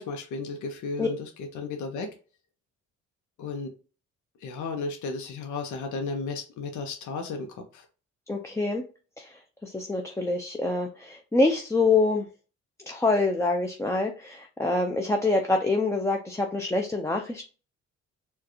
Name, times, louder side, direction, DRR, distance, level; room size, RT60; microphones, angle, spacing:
voice 1, 0.0-2.1 3.4-3.7 4.4-7.8, left 4 dB, 75° left, 4 dB, 0.7 m, -34 dB
voice 2, 8.3-8.8 9.2-12.3 12.9-17.4, left 3 dB, 10° left, 2 dB, 0.4 m, -26 dB
4.5 x 2.2 x 3.0 m, 0.35 s
cardioid pair, 90°, 30 cm